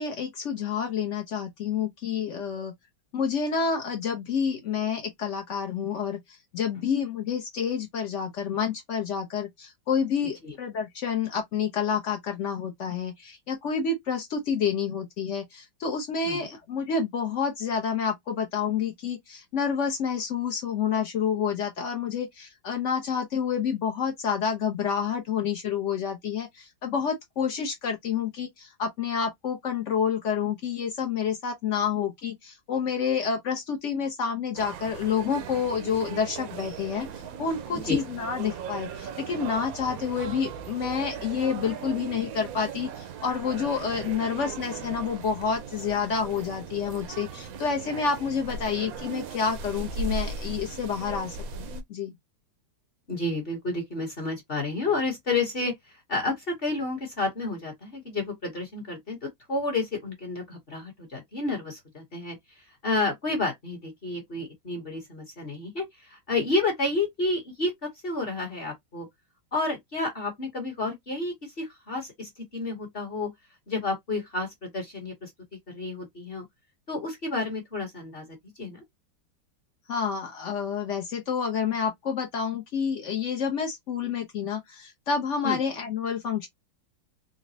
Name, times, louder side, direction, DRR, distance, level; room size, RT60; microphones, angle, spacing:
voice 1, 0.0-2.7 3.1-6.2 6.5-37.1 37.4-52.2 79.9-86.5, left 6 dB, 65° left, 0.7 m, -29 dB
sound 1, 34.5-51.8, right 5 dB, 70° right, 0.9 m, -38 dB
voice 2, 53.1-62.4 62.8-69.1 69.5-73.3 73.7-75.3 75.7-76.4 76.9-78.8 85.4-85.6, left 3 dB, 40° left, 1.0 m, -30 dB
4.0 x 2.1 x 2.7 m
omnidirectional pair, 2.0 m